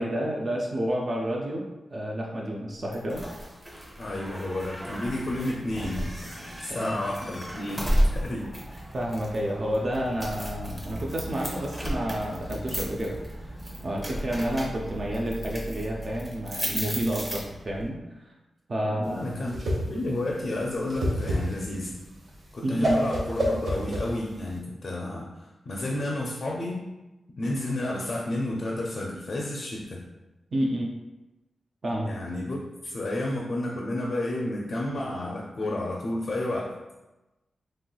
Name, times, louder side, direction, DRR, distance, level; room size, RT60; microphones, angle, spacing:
voice 1, 0.0-1.6 1.9-3.2 6.7-7.0 8.9-13.5 13.8-18.3 18.7-19.4 22.6-23.1 30.5-31.0 31.8-32.1, equal, 45° right, -1 dB, 0.4 m, -30 dB
sound 1, 2.9-17.9, equal, 10° right, 0.7 m, -33 dB
voice 2, 4.0-6.1 6.6-8.5 18.8-22.0 22.5-26.9 27.4-30.1 32.0-36.8, left 1 dB, 50° left, -2 dB, 0.4 m, -31 dB
Whoosh swoosh swish, 19.1-24.6, equal, 65° right, 0.8 m, -29 dB
3.0 x 2.9 x 2.2 m, 1.0 s
wide cardioid pair, 100°, 0 cm